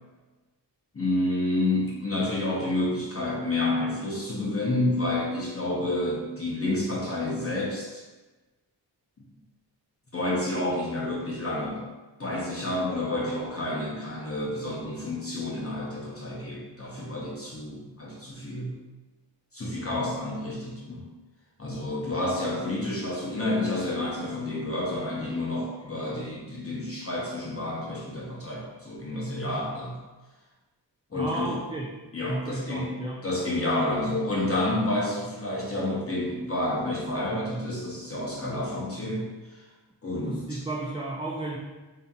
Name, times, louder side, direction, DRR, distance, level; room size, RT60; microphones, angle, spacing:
voice 1, 0.9-8.0 10.1-11.8 12.2-18.7 19.5-21.1 21.6-30.0 31.1-31.6 32.1-33.0 33.2-39.6 40.0-40.6, left 1 dB, 35° left, -4 dB, 0.7 m, -29 dB
voice 2, 31.1-33.2 40.2-41.6, right 2 dB, 15° right, -3 dB, 0.4 m, -33 dB
5.0 x 2.8 x 2.3 m, 1.2 s
wide cardioid pair, 80°, 43 cm